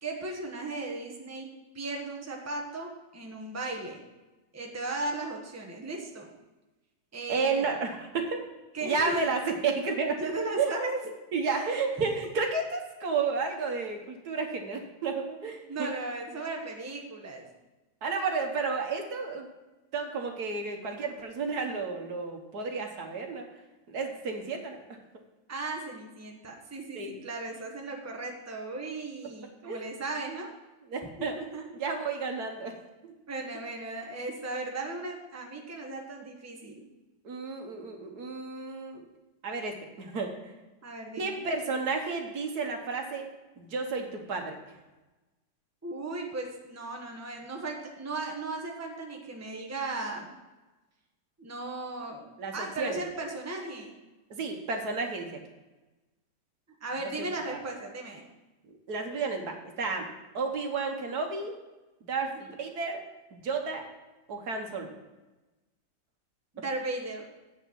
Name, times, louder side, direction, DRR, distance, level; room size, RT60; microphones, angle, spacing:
voice 1, 0.0-4.1 4.5-6.3 7.1-7.7 8.7-9.3 10.2-11.0 11.4-11.8 15.7-17.5 25.5-30.5 31.0-31.1 31.4-31.6 33.3-36.9 40.8-41.4 45.8-50.3 51.4-52.3 52.5-53.9 56.8-58.2 62.2-62.5 66.5-67.3, right 2 dB, 10° right, 0 dB, 1.1 m, -36 dB
voice 2, 7.3-8.4 8.8-10.2 10.6-10.7 11.3-15.9 18.0-19.5 19.9-23.5 23.9-24.8 26.9-27.1 29.6-29.8 30.9-31.4 31.8-32.7 33.0-33.1 37.2-39.1 39.4-40.5 41.2-43.3 43.6-44.6 52.4-53.0 54.3-55.4 57.2-57.6 58.7-60.1 60.3-61.5 62.1-63.0 63.3-63.9 64.3-64.9, right 4 dB, 65° right, 3 dB, 1.6 m, -32 dB
8.2 x 6.5 x 7.4 m, 1.1 s
omnidirectional pair, 1.8 m